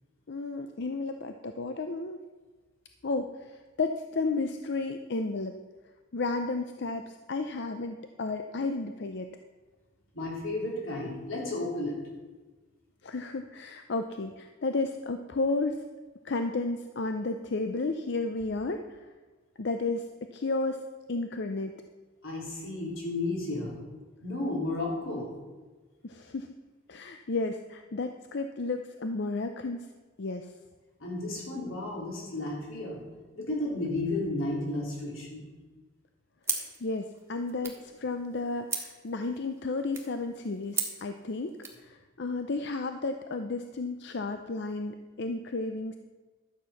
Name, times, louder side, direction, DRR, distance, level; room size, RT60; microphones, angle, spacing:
voice 1, 0.3-2.2 3.0-5.5 6.1-9.3 13.0-15.8 16.2-19.0 19.6-20.0 20.3-20.8 21.1-21.7 26.0-26.5 26.9-29.9 30.2-30.5 36.5-41.5 41.8-46.0, left 3 dB, 55° left, 7 dB, 0.6 m, -32 dB
voice 2, 10.1-12.0 20.7-20.8 22.2-23.8 24.2-25.3 31.0-33.0 33.3-35.5, left 2 dB, 85° left, -3 dB, 3.9 m, -33 dB
sound 1, 36.4-41.8, right 4 dB, 10° right, 1.5 m, -39 dB
12.0 x 8.3 x 5.8 m, 1.3 s
head